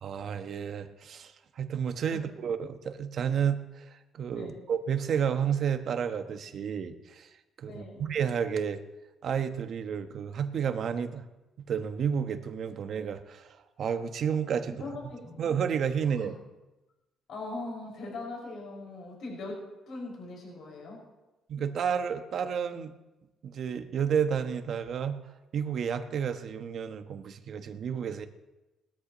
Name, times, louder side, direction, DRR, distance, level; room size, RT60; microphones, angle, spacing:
voice 1, 0.0-7.3 7.6-8.8 9.2-11.2 11.7-14.8 15.4-16.3 21.5-22.9 23.4-25.2 25.5-28.3, right 7 dB, 60° right, 8 dB, 1.1 m, -31 dB
voice 2, 7.7-8.1 14.8-15.4 16.1-16.3 17.3-21.0, left 2 dB, 70° left, -2 dB, 5.8 m, -40 dB
20.0 x 13.5 x 3.1 m, 1.0 s
cardioid pair, 90°, 0 cm